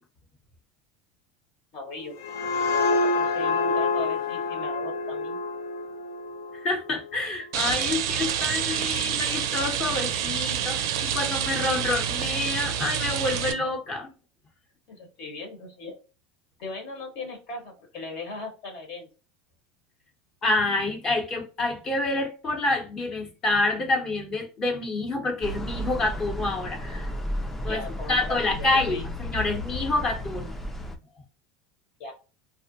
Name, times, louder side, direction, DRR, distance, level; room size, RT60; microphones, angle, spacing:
voice 1, 1.7-2.1 2.7-5.4 14.9-16.0 16.6-19.1 27.7-29.0 32.0-32.1, left 3 dB, 60° left, 1.0 m, -38 dB
sound 1, 2.0-7.4, left 3 dB, 85° left, 0.5 m, -27 dB
voice 2, 6.6-14.1 20.4-27.1 27.6-27.8 28.1-30.5, left 2 dB, 25° left, 0.7 m, -27 dB
Rain, 7.5-13.5, right 9 dB, 80° right, 0.4 m, -28 dB
sound 2, 25.4-31.0, equal, 10° left, 0.3 m, -33 dB
2.5 x 2.0 x 2.6 m
supercardioid pair, 140°, 2 cm